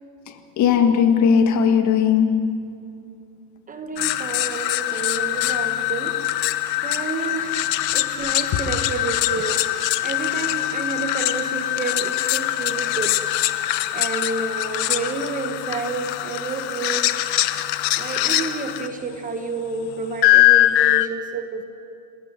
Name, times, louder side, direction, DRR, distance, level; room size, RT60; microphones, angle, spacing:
voice 1, 0.3-2.6, left 7 dB, 35° left, 1.7 m, -18 dB
voice 2, 3.7-6.3 6.8-9.7 10.0-13.2 13.9-17.2 18.0-21.6, right 4 dB, 15° right, 1.0 m, -30 dB
sound 1, 4.0-18.9 20.2-21.1, left 15 dB, 85° left, 1.2 m, -22 dB
29.0 x 18.5 x 6.1 m
supercardioid pair, 150°, 49 cm